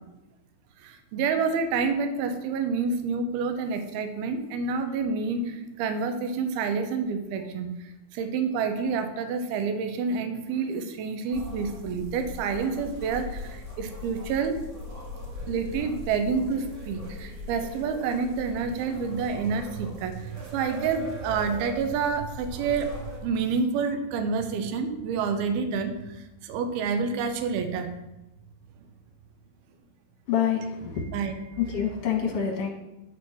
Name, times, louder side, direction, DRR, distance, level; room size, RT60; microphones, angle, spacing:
voice 1, 0.8-7.8 8.1-14.6 15.4-22.9 23.2-26.0 26.4-27.9 31.1-31.4, right 5 dB, 90° right, 8 dB, 2.7 m, -28 dB
sound 1, 11.3-23.2, left 1 dB, 40° right, 2.1 m, -40 dB
voice 2, 30.3-31.0 31.6-32.7, left 8 dB, 55° left, 0 dB, 2.2 m, -26 dB
9.3 x 4.4 x 6.0 m, 0.98 s
omnidirectional pair, 4.3 m